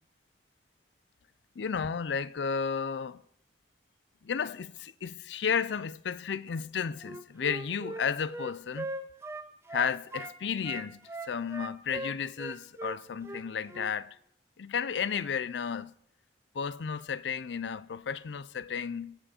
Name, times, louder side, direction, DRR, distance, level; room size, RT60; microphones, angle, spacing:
voice 1, 1.6-3.2 4.2-8.9 9.7-14.2 14.6-15.9 16.5-19.2, left 6 dB, 80° left, 0.5 m, -33 dB
Wind instrument woodwind instrument, 7.0-10.4 10.6-13.9, right 2 dB, 15° right, 0.8 m, -40 dB
22.0 x 7.8 x 4.3 m
head